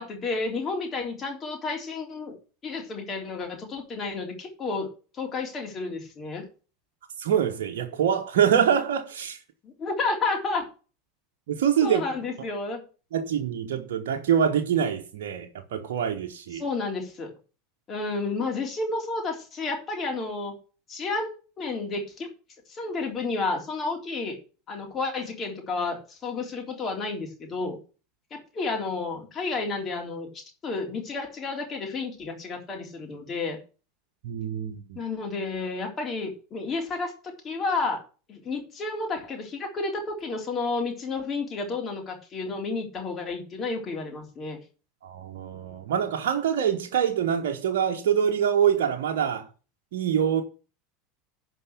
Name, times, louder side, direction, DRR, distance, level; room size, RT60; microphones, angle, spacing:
voice 1, 0.0-2.4 2.6-4.9 5.1-6.4 9.6-10.7 11.8-12.8 16.5-17.3 17.9-20.6 20.9-22.3 22.7-24.4 24.7-27.8 28.3-33.6 35.0-38.0 38.3-44.6, left 3 dB, 30° left, 3.6 m, -31 dB
voice 2, 7.2-9.4 11.5-12.0 13.1-16.6 34.2-35.0 45.0-49.5 49.9-50.4, right 8 dB, 60° right, 1.1 m, -25 dB
11.0 x 4.7 x 8.2 m
figure-of-eight pair, 75°, 0 cm